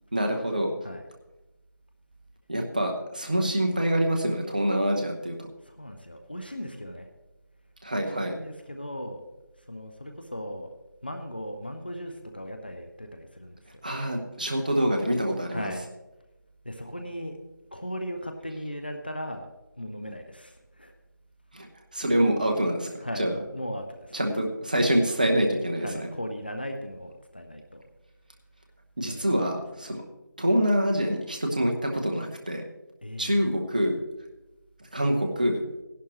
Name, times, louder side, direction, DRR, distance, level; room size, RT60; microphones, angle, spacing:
voice 1, 0.1-0.7 2.5-5.5 7.8-8.3 13.8-15.7 21.5-21.7 21.9-22.9 23.2-23.3 24.1-26.1 29.0-30.0 30.4-32.6 33.2-34.0 34.9-35.6, equal, 25° right, 2 dB, 1.0 m, -25 dB
voice 2, 5.7-7.1 7.9-9.3 9.7-10.7 11.0-13.6 15.5-15.9 16.6-17.4 17.7-19.5 19.8-20.9 22.9-24.2 25.7-27.8 29.0-29.6 33.0-33.5, equal, 30° left, 5 dB, 0.6 m, -37 dB
15.5 x 11.5 x 3.1 m, 1.0 s
figure-of-eight pair, 170°, 11 cm